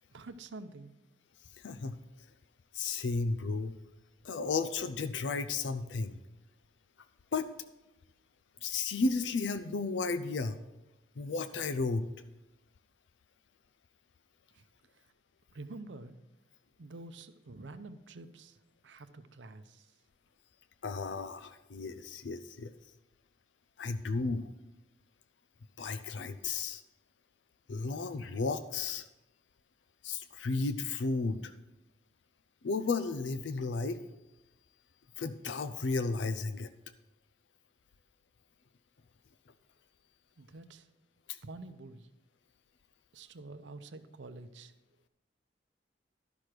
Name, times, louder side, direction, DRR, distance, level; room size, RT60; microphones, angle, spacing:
voice 1, 0.1-0.9 14.5-14.7 14.9-15.1 15.5-16.2 16.8-20.0 40.4-40.9 41.4-42.1 43.1-44.7, right 2 dB, 90° right, 10 dB, 0.7 m, -48 dB
voice 2, 1.6-2.0 2.7-3.8 4.2-6.2 7.3-7.5 8.6-10.6 11.2-12.1 20.8-22.7 23.8-24.5 25.8-26.8 27.7-29.1 30.0-31.5 32.6-34.0 35.2-36.7 41.3-41.4, left 4 dB, 85° left, 11 dB, 0.5 m, -33 dB
12.0 x 6.1 x 4.9 m, 0.95 s
head